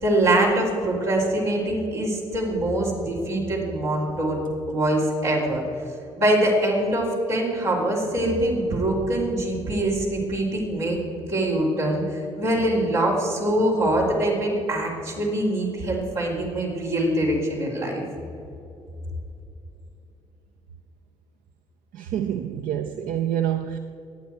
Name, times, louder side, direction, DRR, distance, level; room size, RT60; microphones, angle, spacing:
voice 1, 0.0-4.4 4.7-5.6 6.2-11.0 11.3-18.0, right 1 dB, 90° right, -6 dB, 3.5 m, -23 dB
voice 2, 21.9-23.8, right 10 dB, 70° right, 8 dB, 0.6 m, -27 dB
22.0 x 8.8 x 4.5 m, 2.8 s
hypercardioid pair, 50°, 15 cm